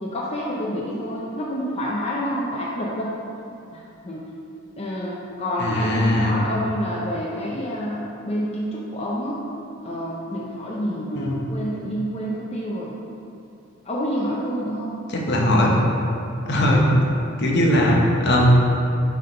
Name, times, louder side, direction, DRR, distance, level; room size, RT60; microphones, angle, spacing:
voice 1, 0.0-3.2 3.7-4.2 4.8-9.4 9.8-12.9 13.8-15.0 15.5-15.9 16.5-16.9, equal, 30° left, -5 dB, 0.6 m, -28 dB
voice 2, 5.6-6.4 11.2-11.3 15.1-15.7 16.5-16.9 17.4-18.5, left 1 dB, 55° left, -2 dB, 0.9 m, -19 dB
7.6 x 3.5 x 4.4 m, 2.6 s
head